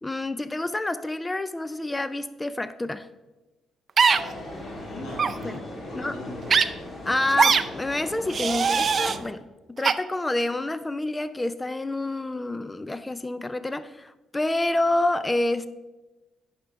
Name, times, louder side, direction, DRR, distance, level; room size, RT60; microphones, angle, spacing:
voice 1, 0.0-3.1 5.4-5.6 5.9-6.2 7.1-15.7, left 2 dB, 15° left, 13 dB, 0.4 m, -28 dB
sound 1, 4.0-4.2 5.1-5.3 6.5-6.6 7.4-7.6 8.3-9.2 9.8-9.9, right 6 dB, 45° right, 0.4 m, -20 dB
sound 2, 4.1-9.2, left 1 dB, 45° left, 1.9 m, -38 dB
voice 2, 4.6-6.7, left 1 dB, 60° left, -3 dB, 3.0 m, -40 dB
10.0 x 5.8 x 3.6 m, 1.1 s
cardioid pair, 90°, 0 cm